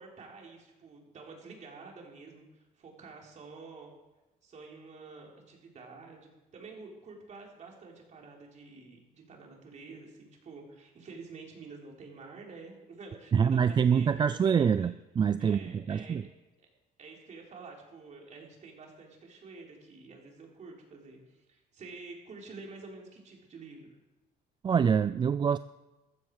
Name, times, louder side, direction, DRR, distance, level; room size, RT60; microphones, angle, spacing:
voice 1, 0.0-3.9 4.4-14.9 15.4-16.2 17.0-24.0, right 4 dB, 45° right, 0 dB, 3.8 m, -49 dB
voice 2, 13.3-16.2 24.6-25.6, right 7 dB, 25° right, 14 dB, 0.3 m, -25 dB
14.5 x 12.5 x 4.8 m, 1.1 s
cardioid pair, 110°, 17 cm